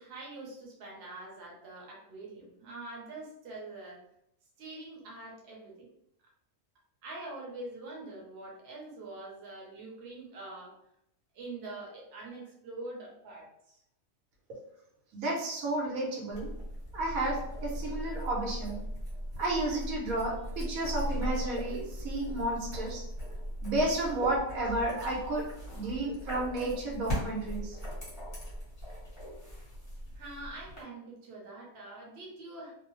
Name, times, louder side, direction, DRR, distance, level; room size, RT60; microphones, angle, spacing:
voice 1, 0.0-4.0 4.6-5.9 7.0-10.7 11.3-13.8 30.1-32.7, right 2 dB, 55° right, -3 dB, 0.9 m, -44 dB
voice 2, 15.1-16.5 16.9-18.8 19.4-23.0 23.6-25.4 25.7-27.8, right 2 dB, 85° right, -2 dB, 1.2 m, -32 dB
sound 1, 16.3-30.8, equal, 20° left, 0.9 m, -39 dB
2.7 x 2.0 x 2.9 m, 0.77 s
omnidirectional pair, 1.4 m